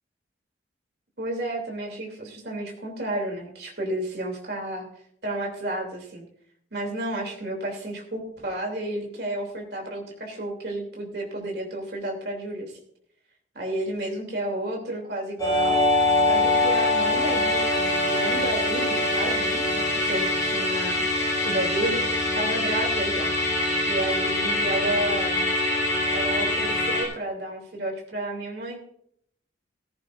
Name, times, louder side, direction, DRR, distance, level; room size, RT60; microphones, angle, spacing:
voice 1, 1.2-4.8 5.2-6.2 6.7-12.8 13.5-15.9 16.2-21.0 21.4-22.0 22.4-23.3 23.9-25.4 26.1-28.8, right 1 dB, 55° right, 0 dB, 3.0 m, -31 dB
Musical instrument, 15.4-27.0, left 1 dB, 20° left, 4.9 m, -24 dB
16.5 x 15.0 x 2.6 m, 0.68 s
head